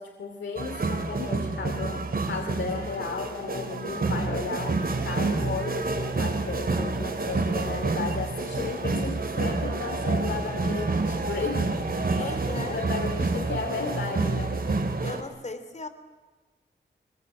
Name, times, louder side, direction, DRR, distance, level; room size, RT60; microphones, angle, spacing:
voice 1, 0.0-11.7 11.9-14.6 14.9-15.1, left 5 dB, 80° left, 5 dB, 2.6 m, -34 dB
sound 1, 0.6-15.2, right 3 dB, 55° right, 3.4 m, -28 dB
voice 2, 12.2-12.8 15.0-15.9, left 2 dB, 40° left, 10 dB, 3.0 m, -36 dB
25.5 x 22.5 x 9.1 m, 1.3 s
wide cardioid pair, 80°, 19 cm